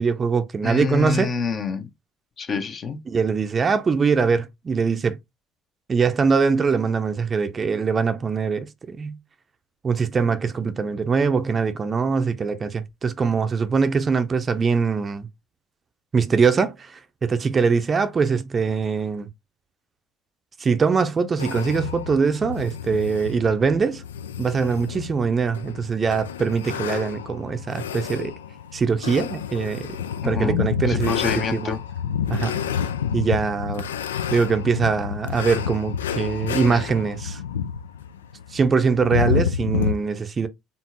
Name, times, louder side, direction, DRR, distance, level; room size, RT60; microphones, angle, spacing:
voice 1, 0.0-1.3 3.1-5.2 5.9-9.2 9.8-15.3 16.1-19.3 20.6-24.0 24.4-28.3 28.7-30.0 30.2-31.7 32.3-32.6 33.1-33.9 34.3-37.4 38.5-40.5, right 5 dB, 30° right, 0.6 m, -22 dB
voice 2, 0.6-1.9 2.4-3.0 30.2-31.8, left 6 dB, 40° left, 1.0 m, -27 dB
sound 1, 21.4-39.9, left 8 dB, 80° left, 0.3 m, -29 dB
4.2 x 3.6 x 2.8 m
figure-of-eight pair, 60°, 0 cm